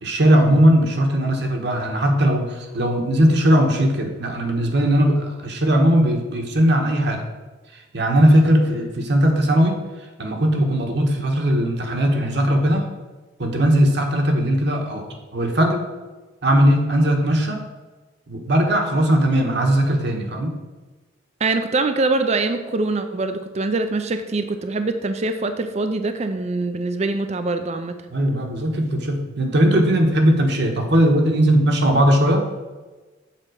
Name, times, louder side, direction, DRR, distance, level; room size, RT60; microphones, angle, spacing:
voice 1, 0.0-7.2 7.9-9.8 10.2-12.8 13.4-15.1 15.3-15.8 16.4-17.6 18.3-20.5 28.1-32.4, equal, 55° right, 2 dB, 1.3 m, -18 dB
voice 2, 21.4-27.9, right 3 dB, 35° right, 8 dB, 0.4 m, -23 dB
7.5 x 4.3 x 6.4 m, 1.2 s
head